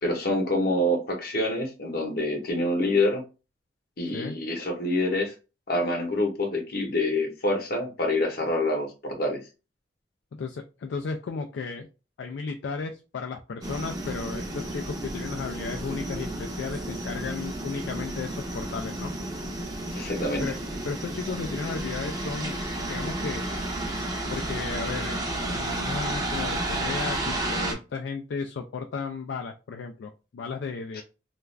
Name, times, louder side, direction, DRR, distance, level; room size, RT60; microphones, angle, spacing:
voice 1, 0.0-3.2 4.0-5.3 5.7-9.4 19.9-20.5 30.9-31.0, left 1 dB, 55° left, 0.9 m, -26 dB
voice 2, 10.3-11.9 12.2-19.1 20.4-20.6 20.8-22.6 22.9-23.4 24.3-31.0, left 4 dB, 70° left, 0.3 m, -34 dB
sound 1, 13.6-27.7, right 1 dB, 20° right, 0.6 m, -32 dB
2.4 x 2.3 x 3.1 m
head